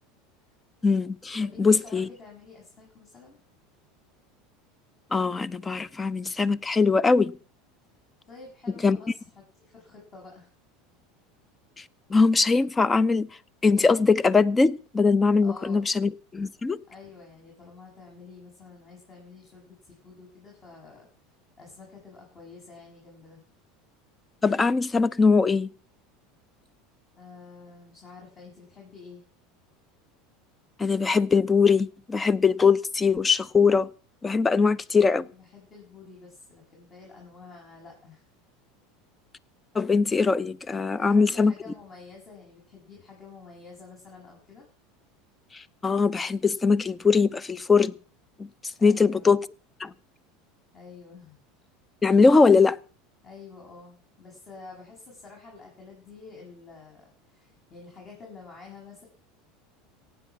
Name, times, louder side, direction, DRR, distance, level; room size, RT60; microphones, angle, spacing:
voice 1, 0.8-2.1 5.1-7.4 8.8-9.0 12.1-13.3 13.6-16.8 24.4-25.7 30.8-33.9 34.2-35.3 39.7-41.5 45.5-47.9 48.4-48.5 48.8-49.4 49.8-49.9 52.0-52.8, left 4 dB, 20° left, 0.7 m, -21 dB
voice 2, 1.4-3.4 8.3-10.5 15.4-15.9 16.9-21.1 21.6-23.4 27.2-29.2 35.1-38.3 40.8-44.7 48.8-49.3 50.7-51.4 53.2-59.0, left 4 dB, 35° left, 7.6 m, -48 dB
15.5 x 9.2 x 7.3 m
hypercardioid pair, 95°, 0 cm